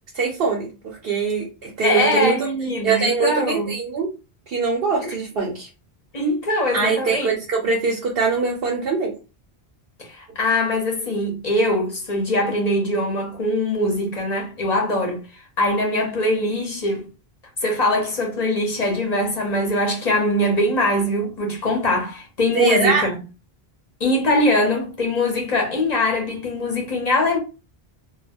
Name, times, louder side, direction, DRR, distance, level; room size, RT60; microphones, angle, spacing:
voice 1, 0.1-2.5 2.8-4.1 4.5-5.7 6.7-9.1 22.5-23.1, right 4 dB, 70° right, 0.9 m, -22 dB
voice 2, 1.8-3.7 5.0-5.2 6.1-7.3 10.0-15.2 15.6-17.1 17.6-23.2 24.0-27.4, left 1 dB, 45° left, 0.8 m, -22 dB
2.2 x 2.1 x 3.3 m
omnidirectional pair, 1.0 m